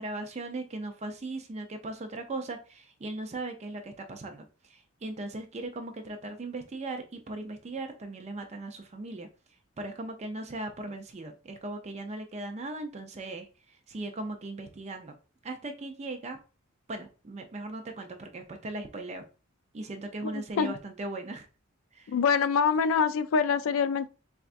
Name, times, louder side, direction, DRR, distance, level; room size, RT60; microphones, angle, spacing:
voice 1, 0.0-9.3 9.8-13.5 13.9-15.1 15.4-16.4 16.9-19.2 19.7-21.5 21.9-22.1, right 2 dB, 35° right, 0.4 m, -38 dB
voice 2, 20.3-20.7 22.1-24.1, left 6 dB, 70° left, 0.3 m, -25 dB
4.3 x 2.4 x 2.4 m
head